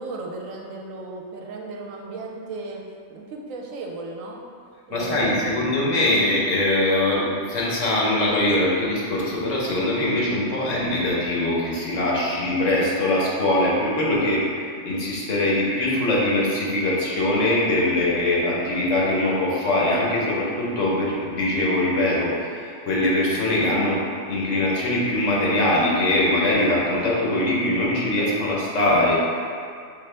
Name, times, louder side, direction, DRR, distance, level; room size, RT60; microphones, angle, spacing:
voice 1, 0.0-2.8 3.1-4.4 4.9-5.8, right 2 dB, 80° right, 0 dB, 1.0 m, -35 dB
voice 2, 4.9-24.0 24.3-29.1, left 1 dB, 70° left, -5 dB, 1.3 m, -22 dB
3.9 x 3.9 x 3.3 m, 2.2 s
omnidirectional pair, 1.3 m